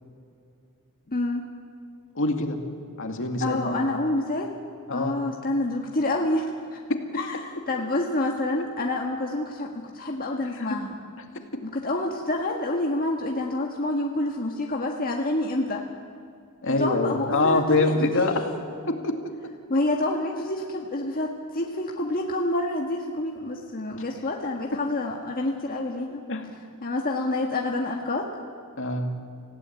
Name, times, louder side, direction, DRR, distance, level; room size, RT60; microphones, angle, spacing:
voice 1, 1.1-1.4 3.4-4.5 4.9-6.8 7.1-10.9 11.6-15.8 16.8-18.6 19.7-26.2 26.8-28.3, left 2 dB, 40° left, 0 dB, 1.6 m, -28 dB
voice 2, 2.2-2.6 3.0-3.8 4.9-5.2 6.9-7.3 10.6-10.8 16.6-18.5 18.9-19.1 26.1-26.4 28.8-29.1, left 2 dB, 60° left, 4 dB, 2.4 m, -25 dB
26.5 x 16.5 x 9.4 m, 2.3 s
head